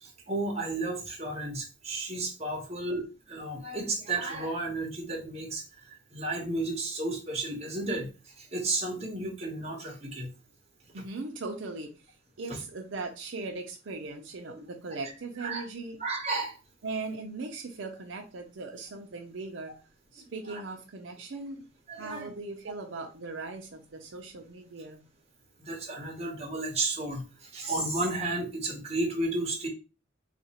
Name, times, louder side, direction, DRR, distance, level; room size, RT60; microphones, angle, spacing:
voice 1, 0.0-5.6 6.1-8.1 8.4-10.3 12.5-12.6 15.4-15.6 16.0-16.5 20.5-20.6 21.9-22.3 25.6-29.7, right 2 dB, 35° right, 0 dB, 0.9 m, -33 dB
voice 2, 10.9-16.0 16.8-19.7 20.1-21.6 22.0-25.0, right 3 dB, 70° right, 3 dB, 0.6 m, -39 dB
2.8 x 2.5 x 4.2 m, 0.31 s
head